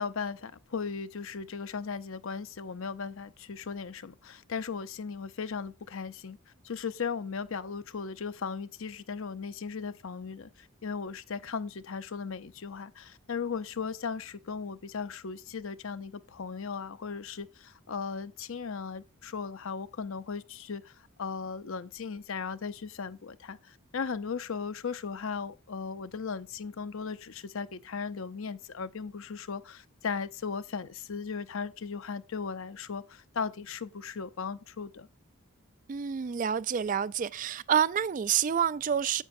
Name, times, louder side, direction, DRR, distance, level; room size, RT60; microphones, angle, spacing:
voice 1, 0.0-6.4 6.6-35.1, left 5 dB, 70° left, 0.6 m, -37 dB
voice 2, 35.9-39.2, right 8 dB, 40° right, 0.3 m, -28 dB
10.0 x 8.0 x 2.6 m
head